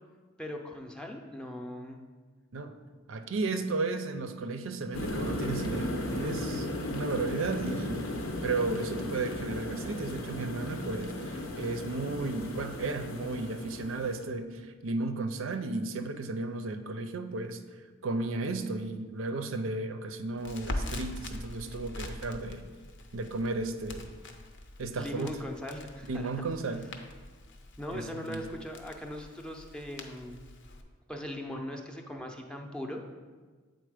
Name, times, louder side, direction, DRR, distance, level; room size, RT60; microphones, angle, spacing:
voice 1, 0.4-2.0 24.9-26.3 27.8-30.4 31.1-33.0, left 1 dB, 5° left, 2 dB, 0.5 m, -39 dB
voice 2, 3.1-8.1 8.4-17.6 18.0-22.6 23.1-24.1 24.8-25.3 26.1-26.8 27.9-28.0 28.3-28.4, right 3 dB, 70° right, 8 dB, 0.5 m, -34 dB
sound 1, 4.9-14.3, left 1 dB, 90° left, 0.9 m, -36 dB
Crackle, 20.4-30.8, left 1 dB, 60° left, 0.7 m, -43 dB
7.9 x 4.0 x 4.9 m, 1.4 s
head